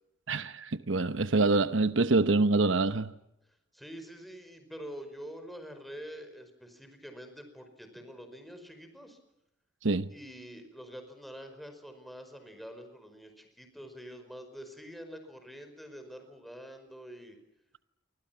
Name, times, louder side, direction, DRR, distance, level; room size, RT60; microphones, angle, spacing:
voice 1, 0.3-3.1 9.8-10.1, right 3 dB, 90° right, 0.9 m, -26 dB
voice 2, 3.7-9.2 10.1-17.4, equal, ahead, 5.1 m, -46 dB
29.0 x 25.0 x 5.9 m
head